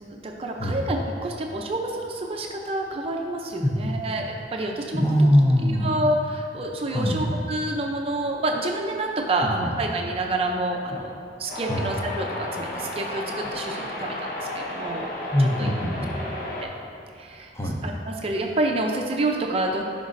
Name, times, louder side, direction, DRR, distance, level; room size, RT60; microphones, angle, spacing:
voice 1, 0.0-5.0 5.6-11.1 11.4-15.1 15.4-15.7 16.6-16.7 17.2-17.5 17.8-19.8, right 2 dB, 35° right, 1 dB, 0.5 m, -28 dB
voice 2, 4.9-5.9 6.9-7.4 9.4-9.9 11.7-11.9 15.3-16.1 17.5-17.8, equal, 15° left, 0 dB, 0.7 m, -22 dB
sound 1, 11.5-16.6, left 1 dB, 55° left, 1.1 m, -33 dB
12.0 x 5.2 x 2.5 m, 2.6 s
head